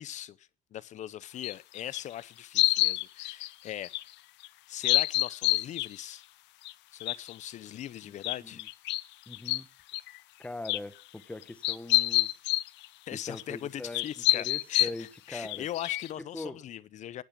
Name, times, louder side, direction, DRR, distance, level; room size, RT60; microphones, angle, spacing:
voice 1, 0.0-4.1 4.7-6.2 6.9-8.6 13.1-17.2, left 12 dB, 40° left, 0.6 m, -40 dB
sound 1, 1.4-2.0 2.5-4.0 4.4-4.5 4.8-5.9 6.6-6.7 7.0-7.3 7.8-7.9 8.2-9.0 9.3-9.6 9.9-10.2 10.6-10.8 11.4-12.9 13.4-13.5 13.9-15.0 15.5-16.1, left 18 dB, 85° left, 0.6 m, -27 dB
voice 2, 9.3-9.7 10.4-12.3 13.1-14.1 14.3-15.7 16.3-16.6, left 2 dB, 5° left, 0.9 m, -41 dB
10.5 x 9.0 x 9.9 m
cardioid pair, 180°, 18 cm